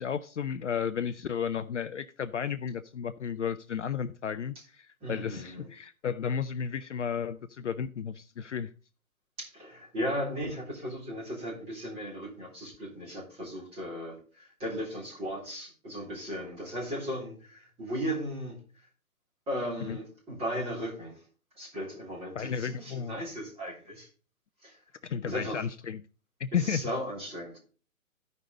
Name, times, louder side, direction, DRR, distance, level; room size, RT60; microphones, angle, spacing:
voice 1, 0.0-8.7 19.9-20.0 22.4-23.2 25.0-26.0 26.4-26.9, left 7 dB, 55° left, 14 dB, 0.5 m, -33 dB
voice 2, 5.0-5.7 9.4-18.9 19.5-21.2 21.5-24.1 24.6-24.8 25.2-25.6 26.5-27.6, equal, 15° right, -5 dB, 3.6 m, -36 dB
14.0 x 5.4 x 3.9 m, 0.38 s
figure-of-eight pair, 135°, 43 cm